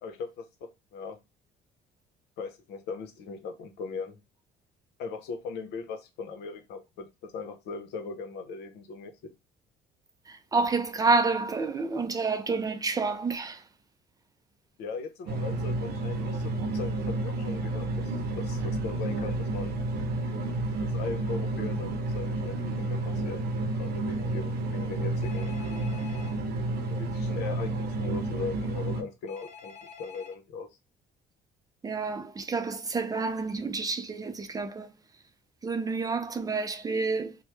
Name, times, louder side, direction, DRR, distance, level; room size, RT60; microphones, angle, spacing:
voice 1, 0.0-1.2 2.4-4.2 5.0-9.1 14.8-17.9 18.3-19.8 20.8-25.5 26.9-30.7, left 4 dB, 80° left, 0.7 m, -39 dB
voice 2, 10.3-13.6 31.8-34.9 35.6-37.4, right 4 dB, 20° right, 0.4 m, -29 dB
sound 1, 15.3-29.0, right 2 dB, 70° right, 0.7 m, -30 dB
Telephone, 25.2-26.4 29.3-30.3, left 6 dB, 40° left, 0.8 m, -47 dB
3.0 x 2.1 x 3.1 m
cardioid pair, 110°, 17 cm